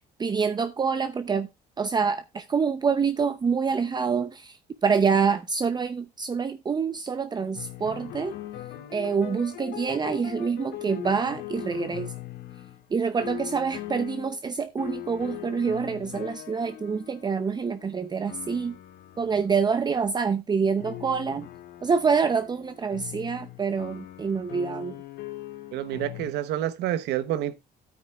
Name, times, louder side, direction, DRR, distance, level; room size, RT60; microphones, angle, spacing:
voice 1, 0.2-1.5 1.8-4.6 4.8-8.3 8.9-12.1 12.9-18.7 19.2-21.5 21.8-25.0, right 5 dB, 25° right, 0.7 m, -26 dB
sound 1, 7.5-12.9 13.2-14.4 14.8-20.3 20.8-26.3, left 14 dB, 85° left, 1.6 m, -40 dB
voice 2, 25.7-27.6, right 12 dB, 85° right, 1.0 m, -28 dB
13.0 x 8.8 x 2.4 m
cardioid pair, 110°, 17 cm